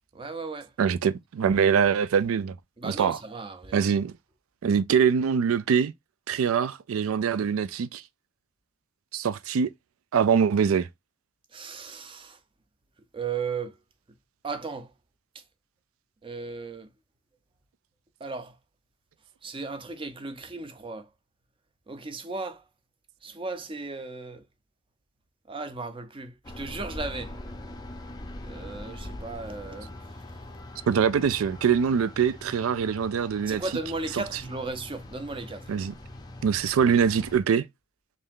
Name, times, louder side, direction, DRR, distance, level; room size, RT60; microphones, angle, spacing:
voice 1, 0.1-0.7 2.8-3.8 11.5-12.4 13.1-13.8 14.4-14.9 15.3-15.4 16.2-16.9 18.2-18.6 19.4-21.1 21.9-22.6 23.2-24.4 25.5-27.3 28.4-30.1 33.5-35.7, right 3 dB, 25° right, 0.5 m, -36 dB
voice 2, 0.8-2.5 2.8-3.2 3.7-4.1 4.6-5.9 6.3-8.0 9.1-9.7 10.1-10.9 30.9-33.6 35.7-35.9 36.4-37.6, right 7 dB, 85° right, 0.4 m, -23 dB
sound 1, 26.4-37.4, left 1 dB, 20° left, 0.5 m, -42 dB
3.3 x 2.7 x 3.6 m
head